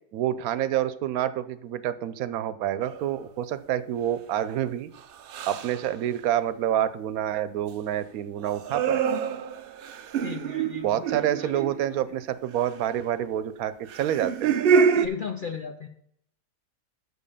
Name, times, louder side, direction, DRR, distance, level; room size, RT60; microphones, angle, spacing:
voice 1, 0.1-4.9 5.5-9.0 10.8-14.5, right 11 dB, 85° right, 14 dB, 1.1 m, -28 dB
sound 1, 2.8-3.1 5.3-5.8 8.4-12.0 13.9-15.1, right 6 dB, 65° right, 0.5 m, -26 dB
voice 2, 10.2-11.0 11.4-11.5 15.0-15.9, left 6 dB, 60° left, 6 dB, 0.5 m, -35 dB
6.4 x 5.4 x 6.5 m, 0.68 s
omnidirectional pair, 1.5 m